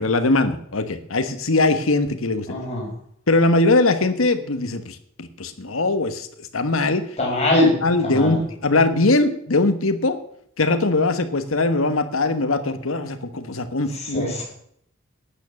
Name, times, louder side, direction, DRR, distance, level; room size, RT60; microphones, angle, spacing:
voice 1, 0.0-2.5 3.3-7.1 7.8-10.2 10.6-14.4, left 2 dB, 85° left, 10 dB, 1.3 m, -21 dB
voice 2, 2.5-2.9 7.2-8.4 14.0-14.4, left 1 dB, 30° left, -2 dB, 5.9 m, -22 dB
11.5 x 9.2 x 7.1 m, 0.67 s
head